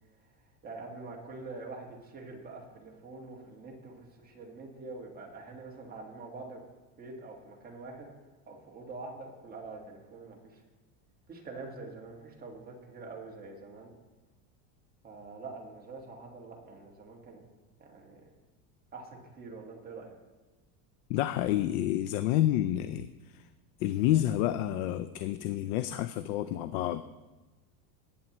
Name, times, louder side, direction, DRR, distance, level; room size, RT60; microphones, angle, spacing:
voice 1, 0.6-6.6 7.0-8.1 8.5-10.6 11.3-13.9 15.0-17.4 17.8-18.3 18.9-20.2, right 3 dB, 20° right, -1 dB, 1.6 m, -45 dB
voice 2, 21.1-23.1 23.3-23.5 23.8-27.0, left 13 dB, 75° left, 12 dB, 0.6 m, -29 dB
18.5 x 8.7 x 3.0 m, 1.2 s
cardioid pair, 165°, 45 cm